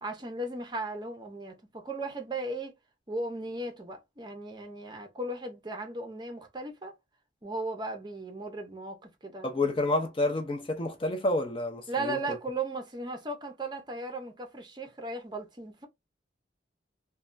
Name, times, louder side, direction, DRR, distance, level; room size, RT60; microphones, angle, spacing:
voice 1, 0.0-2.7 3.1-6.9 7.4-9.7 11.9-15.9, right 2 dB, 25° right, 0.6 m, -36 dB
voice 2, 9.4-12.2, left 2 dB, 30° left, 0.4 m, -29 dB
3.2 x 2.2 x 2.4 m
head